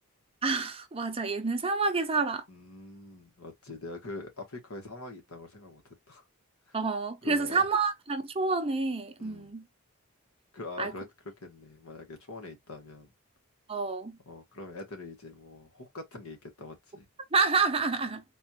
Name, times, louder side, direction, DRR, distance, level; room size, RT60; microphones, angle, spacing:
voice 1, 0.4-2.4 6.7-9.7 10.8-10.9 13.7-14.2 17.3-18.2, right 4 dB, 25° right, 0.7 m, -28 dB
voice 2, 2.5-6.2 6.7-6.8 7.2-7.6 9.2-9.5 10.5-11.0 11.4-13.1 14.2-17.1, left 2 dB, 75° left, 1.5 m, -44 dB
4.1 x 2.5 x 2.9 m
head